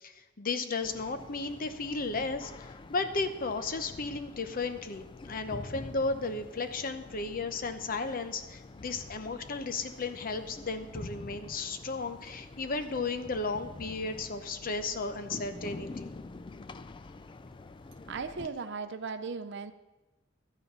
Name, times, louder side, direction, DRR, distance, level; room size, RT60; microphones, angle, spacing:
voice 1, 0.0-16.1, left 3 dB, 45° left, 9 dB, 0.8 m, -34 dB
sound 1, 0.8-18.5, left 3 dB, 25° left, 0.3 m, -46 dB
voice 2, 18.0-19.7, right 5 dB, 60° right, 10 dB, 0.6 m, -37 dB
12.5 x 8.3 x 5.4 m, 1.1 s
head